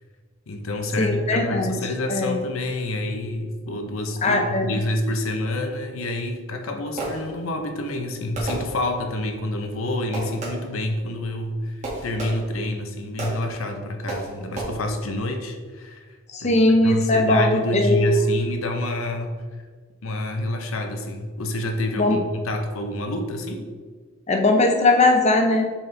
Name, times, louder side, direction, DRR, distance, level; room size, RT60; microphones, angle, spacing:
voice 1, 0.5-11.7 12.0-16.0 16.4-16.5 16.8-19.3 20.0-23.7, left 1 dB, 80° left, 5 dB, 0.8 m, -27 dB
voice 2, 1.0-1.8 2.1-2.4 4.2-4.8 16.3-18.2 22.0-22.2 24.3-25.7, left 2 dB, 30° left, 3 dB, 0.6 m, -19 dB
Fireworks, 6.4-7.6 8.3-9.2 10.1-10.8 11.8-12.7 13.2-13.6 14.1-14.6, right 2 dB, 35° right, 1.6 m, -32 dB
7.1 x 4.3 x 3.3 m, 1.5 s
head